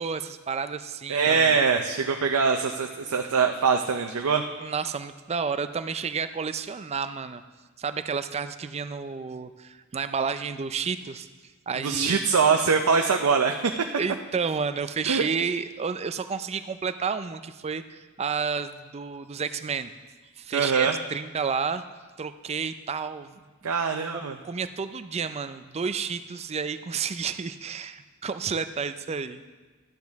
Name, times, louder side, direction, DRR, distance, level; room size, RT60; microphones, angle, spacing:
voice 1, 0.0-1.6 4.6-7.4 7.8-11.3 11.7-12.2 14.0-19.9 20.4-21.8 22.2-23.4 24.1-29.4, right 5 dB, 30° right, 11 dB, 0.4 m, -31 dB
voice 2, 1.1-4.4 11.8-13.7 15.1-15.3 20.5-21.0 23.6-24.4, right 5 dB, 85° right, 4 dB, 0.6 m, -23 dB
13.0 x 9.5 x 3.5 m, 1.3 s
head